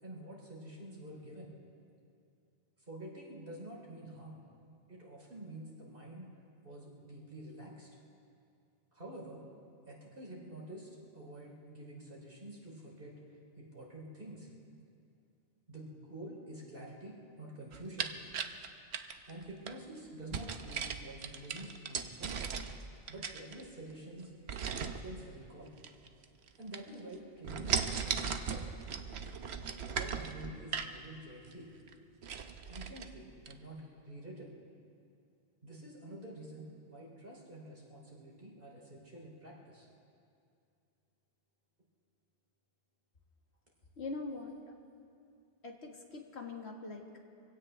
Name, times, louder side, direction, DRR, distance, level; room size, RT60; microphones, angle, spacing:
voice 1, 0.0-1.5 2.8-4.4 4.9-6.3 6.6-7.9 8.9-9.4 9.9-14.5 15.7-18.1 19.3-22.4 23.1-24.3 24.6-25.8 26.5-28.6 29.9-31.7 32.7-34.5 35.6-39.9, right 1 dB, 50° right, -3 dB, 3.4 m, -48 dB
sound 1, 17.7-19.7 20.3-22.8 23.1-23.9 24.5-25.0 25.8-26.5 26.7-27.1 27.4-31.0 31.4-31.5 31.9-32.0 32.2-33.1 33.5-33.6, right 6 dB, 65° right, 1.0 m, -37 dB
voice 2, 44.0-44.5 45.6-47.2, left 3 dB, 65° left, 1 dB, 2.0 m, -42 dB
25.0 x 17.0 x 3.3 m, 2.4 s
omnidirectional pair, 1.2 m